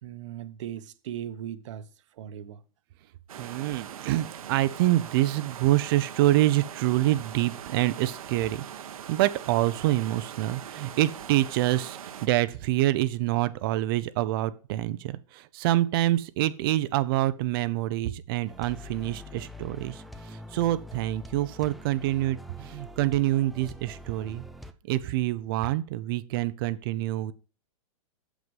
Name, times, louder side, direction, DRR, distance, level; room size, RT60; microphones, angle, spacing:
voice 1, 0.0-2.6, right 10 dB, 60° right, 1.2 m, -38 dB
sound 1, 3.3-12.3, right 9 dB, 80° right, 1.3 m, -41 dB
voice 2, 3.4-24.4 24.9-27.3, right 15 dB, 40° right, 0.7 m, -26 dB
sound 2, 18.5-24.7, left 1 dB, ahead, 0.5 m, -44 dB
8.2 x 7.7 x 5.4 m
hypercardioid pair, 150°, 18 cm